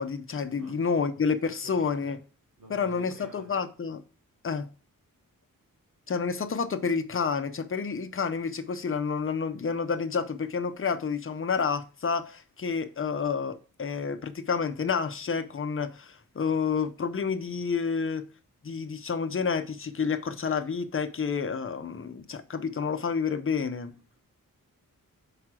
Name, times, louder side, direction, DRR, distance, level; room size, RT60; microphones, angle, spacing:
voice 1, 0.0-2.2 2.7-4.0 4.4-4.7 6.1-18.3 18.6-23.9, left 5 dB, 40° left, 0.7 m, -29 dB
voice 2, 1.4-2.1 2.6-3.5 23.9-24.2, right 3 dB, 65° right, 3.0 m, -50 dB
6.1 x 4.9 x 4.8 m
wide cardioid pair, 170°, 34 cm